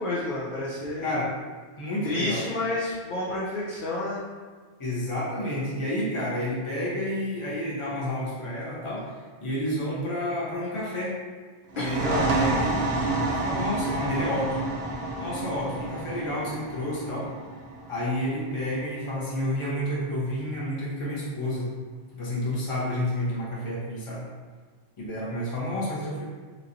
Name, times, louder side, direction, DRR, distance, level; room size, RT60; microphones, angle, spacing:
voice 1, 0.0-1.1 2.0-4.2 11.8-12.3, left 2 dB, 55° left, -7 dB, 0.7 m, -30 dB
voice 2, 1.0-1.3 1.8-2.4 4.8-11.2 11.8-14.6 15.2-17.3 17.9-21.7 22.1-24.3 25.0-26.3, left 1 dB, 30° left, -7 dB, 0.9 m, -30 dB
sound 1, 11.7-19.1, right 2 dB, 60° right, 0.8 m, -29 dB
4.4 x 2.7 x 2.6 m, 1.5 s
omnidirectional pair, 1.3 m